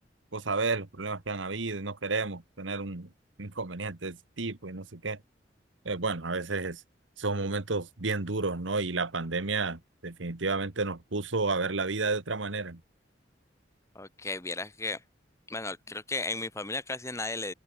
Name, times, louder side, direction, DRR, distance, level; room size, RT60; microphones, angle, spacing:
voice 1, 0.3-3.1 3.4-5.2 5.8-6.8 7.2-12.8, right 3 dB, 85° right, 1.6 m, -31 dB
voice 2, 13.9-15.0 15.5-17.5, left 3 dB, 15° left, 2.5 m, -35 dB
open air
head